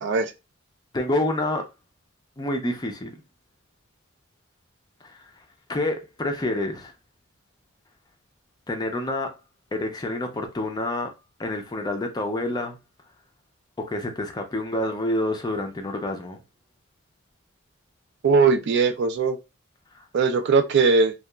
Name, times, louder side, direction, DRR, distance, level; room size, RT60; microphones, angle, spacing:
voice 1, 0.0-0.3 18.2-19.4 20.1-21.1, right 4 dB, 55° right, 0.4 m, -20 dB
voice 2, 0.9-1.6 2.4-3.2 5.0-6.9 8.7-9.4 9.7-11.1 11.4-12.8 13.8-16.4 19.9-20.1, left 1 dB, 20° left, 0.4 m, -28 dB
2.8 x 2.3 x 2.2 m
head